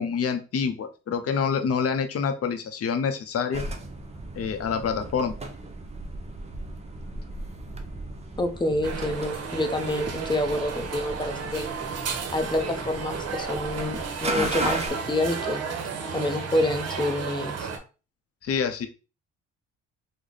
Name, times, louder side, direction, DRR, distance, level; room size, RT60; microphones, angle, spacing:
voice 1, 0.0-3.6 4.3-5.3 18.4-18.9, left 6 dB, 50° left, 8 dB, 0.7 m, -27 dB
sound 1, 3.5-14.9, right 2 dB, 20° right, 0.6 m, -36 dB
voice 2, 8.4-11.6 12.3-15.6 16.1-17.7, left 1 dB, 15° left, 6 dB, 0.7 m, -27 dB
sound 2, 8.8-17.8, right 5 dB, 55° right, 0.8 m, -33 dB
3.3 x 2.1 x 3.9 m, 0.33 s
cardioid pair, 90°, 30 cm